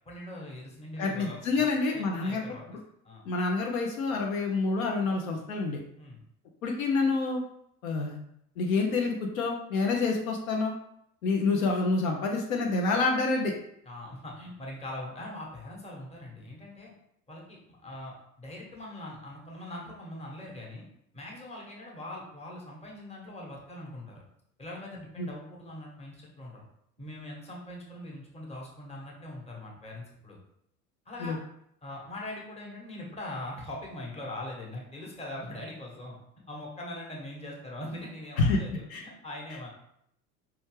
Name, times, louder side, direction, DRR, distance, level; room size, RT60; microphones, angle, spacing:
voice 1, 0.0-1.7 1.9-2.6 3.0-3.2 6.0-6.2 13.8-16.9 17.3-20.8 21.1-24.2 24.6-26.6 27.0-30.4 31.1-31.4 31.8-36.2 36.5-39.7, left 1 dB, 15° left, -2 dB, 1.2 m, -42 dB
voice 2, 1.0-2.4 2.7-2.8 3.3-5.8 6.6-7.4 7.8-8.2 8.6-10.7 11.2-13.5 25.2-25.3 31.2-31.4 38.4-39.0, left 3 dB, 60° left, 1 dB, 0.8 m, -27 dB
4.8 x 3.1 x 3.2 m, 0.74 s
figure-of-eight pair, 70°, 46 cm